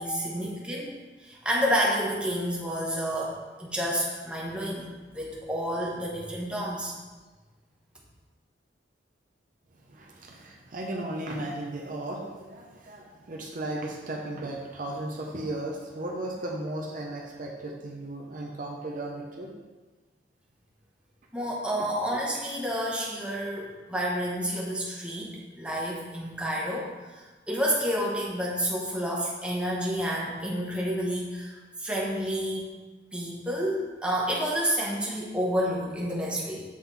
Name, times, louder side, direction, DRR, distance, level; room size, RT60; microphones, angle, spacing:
voice 1, 0.0-4.9 5.1-6.9 21.3-32.8 33.1-36.6, equal, 5° right, -4 dB, 1.1 m, -30 dB
voice 2, 9.9-19.5 22.0-22.1, right 1 dB, 50° right, 0 dB, 0.7 m, -35 dB
7.5 x 3.8 x 4.1 m, 1.3 s
head